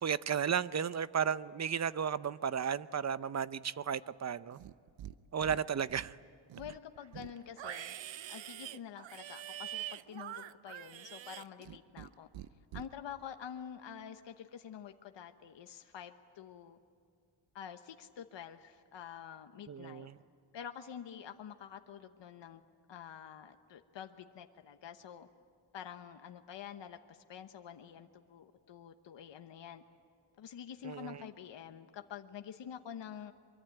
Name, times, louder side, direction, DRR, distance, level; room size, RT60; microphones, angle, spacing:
voice 1, 0.0-4.6 5.3-6.2 19.7-20.2 30.8-31.2, right 7 dB, 40° right, 16 dB, 0.7 m, -34 dB
Livestock farm animals working animals, 4.5-5.1 5.4-6.1 6.5-12.1 12.3-12.9, right 12 dB, 85° right, 0.8 m, -45 dB
voice 2, 6.6-8.0 8.3-12.3 12.7-16.8 17.5-20.1 20.5-22.6 22.9-25.3 25.7-29.8 30.4-33.3, left 8 dB, 70° left, 6 dB, 1.2 m, -48 dB
24.5 x 23.5 x 9.2 m, 2.3 s
wide cardioid pair, 115°, 45 cm